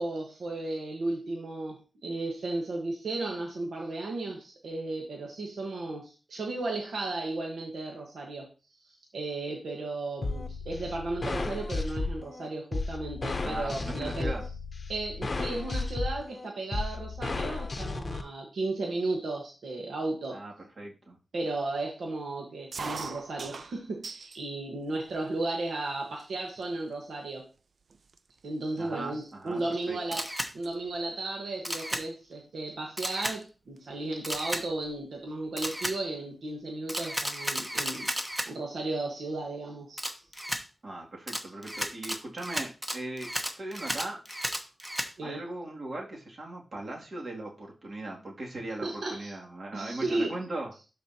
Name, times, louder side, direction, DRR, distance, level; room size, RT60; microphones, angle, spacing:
voice 1, 0.0-8.5 8.8-14.3 14.9-20.4 21.3-27.5 28.4-30.3 30.5-38.1 38.5-40.0 45.2-45.4 48.8-49.3 49.7-50.3, right 2 dB, 80° right, 0 dB, 1.3 m, -34 dB
sound 1, 10.2-18.2, left 3 dB, 40° left, 0.8 m, -34 dB
voice 2, 13.4-14.4 20.3-21.2 28.8-30.0 40.8-44.2 45.2-50.7, right 2 dB, 50° right, -2 dB, 2.4 m, -39 dB
sound 2, 22.7-24.5 24.9-25.5 26.2-26.3 26.6-26.9 27.6-27.7 27.9-30.2 30.4-30.7 32.1-32.3 33.4-33.5 33.8-33.9 34.1-35.0, right 4 dB, 65° right, 0.4 m, -42 dB
Camera, 30.1-30.5 31.6-32.0 33.0-33.4 34.2-34.6 35.6-36.0 36.9-38.5 40.0-40.6 41.3-45.1, equal, 10° right, 1.0 m, -33 dB
12.0 x 4.3 x 2.8 m, 0.33 s
wide cardioid pair, 90°, 0 cm